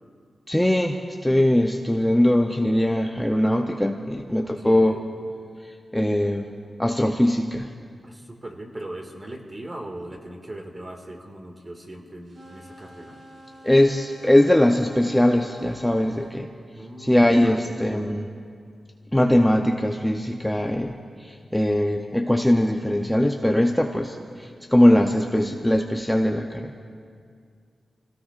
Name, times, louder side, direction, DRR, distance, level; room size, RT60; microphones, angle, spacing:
voice 1, 0.5-5.0 5.9-6.5 6.8-7.7 13.6-16.5 17.0-18.3 19.1-26.8, left 1 dB, 5° left, 2 dB, 0.6 m, -21 dB
voice 2, 4.4-5.0 8.0-13.2 16.7-17.8, right 1 dB, 30° right, 2 dB, 1.9 m, -39 dB
sound 1, 12.2-16.4, equal, 65° right, 3.6 m, -47 dB
28.5 x 17.0 x 2.5 m, 2.2 s
wide cardioid pair, 120°, 0 cm